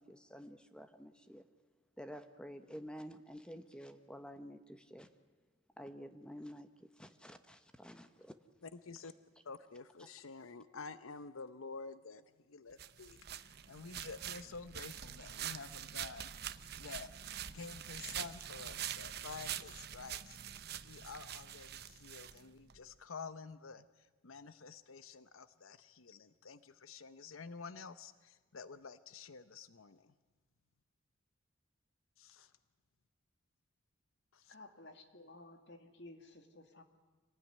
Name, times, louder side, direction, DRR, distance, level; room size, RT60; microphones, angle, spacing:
voice 1, 0.0-1.5 2.0-5.1 5.8-8.3 10.0-10.1, equal, 5° left, 9 dB, 1.0 m, -50 dB
voice 2, 8.6-9.1 9.4-13.2 13.7-16.4 16.8-17.1 17.5-20.4 20.8-30.1 32.2-32.5 34.3-34.6, left 4 dB, 90° left, 13 dB, 0.8 m, -50 dB
sound 1, 12.8-22.8, right 10 dB, 50° right, 0.8 m, -45 dB
voice 3, 34.5-36.8, left 2 dB, 60° left, 6 dB, 2.3 m, -55 dB
26.5 x 18.5 x 9.5 m, 1.4 s
head